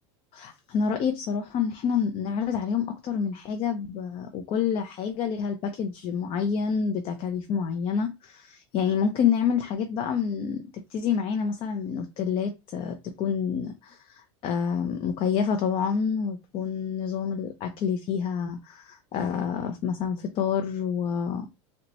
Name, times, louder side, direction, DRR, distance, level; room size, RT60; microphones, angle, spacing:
voice 1, 0.3-10.6 10.9-21.5, left 7 dB, 40° left, 0.5 m, -28 dB
3.9 x 2.2 x 3.0 m
supercardioid pair, 130°, 15 cm